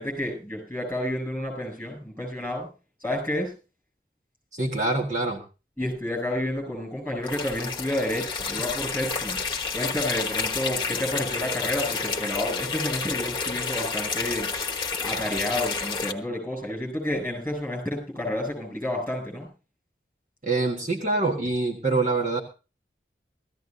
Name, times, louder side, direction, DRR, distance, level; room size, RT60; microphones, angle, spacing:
voice 1, 0.0-2.7 3.0-3.5 5.8-9.4 9.7-14.5 15.0-19.5, left 1 dB, 10° left, 1 dB, 7.6 m, -30 dB
voice 2, 4.5-5.4 20.4-22.4, right 3 dB, 45° right, 1 dB, 1.6 m, -25 dB
sound 1, 7.2-16.1, left 4 dB, 25° left, 1.3 m, -30 dB
18.0 x 14.5 x 2.6 m, 0.33 s
head